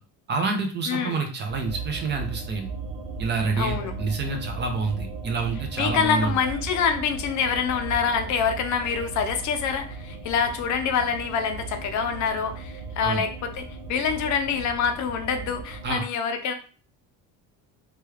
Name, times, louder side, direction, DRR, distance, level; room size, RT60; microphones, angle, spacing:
voice 1, 0.3-2.7 3.2-6.3 13.0-13.2 15.8-16.0, right 4 dB, 30° right, 4 dB, 0.5 m, -27 dB
voice 2, 0.9-1.2 3.6-3.9 5.8-16.5, left 6 dB, 55° left, 6 dB, 0.6 m, -26 dB
sound 1, 1.5-16.0, right 3 dB, 90° right, 0.7 m, -37 dB
3.0 x 2.3 x 3.1 m, 0.39 s
cardioid pair, 145°, 35 cm